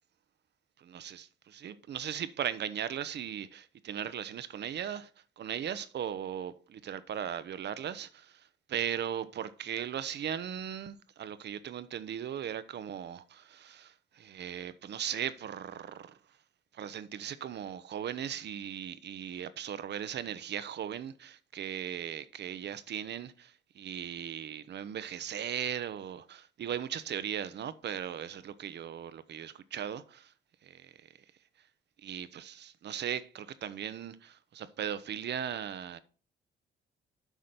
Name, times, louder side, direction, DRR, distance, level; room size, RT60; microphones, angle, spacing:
voice 1, 0.8-5.1 5.4-16.2 16.7-30.3 30.6-31.1 32.0-36.0, right 9 dB, 60° right, 0.8 m, -38 dB
8.2 x 5.1 x 6.0 m
cardioid pair, 90°, 20 cm